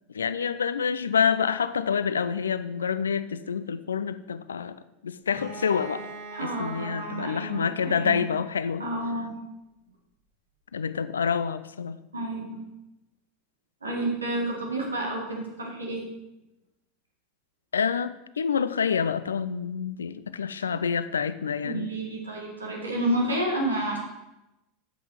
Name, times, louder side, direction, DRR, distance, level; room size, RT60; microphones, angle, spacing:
voice 1, 0.1-4.8 5.0-6.1 6.4-8.8 10.7-12.0 17.7-21.9, left 6 dB, 75° left, 13 dB, 0.4 m, -27 dB
Bowed string instrument, 5.3-9.0, right 3 dB, 40° right, 2.6 m, -44 dB
voice 2, 6.3-8.2 8.8-9.4 12.1-12.6 13.8-16.1 21.6-24.0, right 1 dB, 80° right, -1 dB, 1.9 m, -30 dB
8.1 x 5.4 x 5.8 m, 0.95 s
figure-of-eight pair, 85°, 0 cm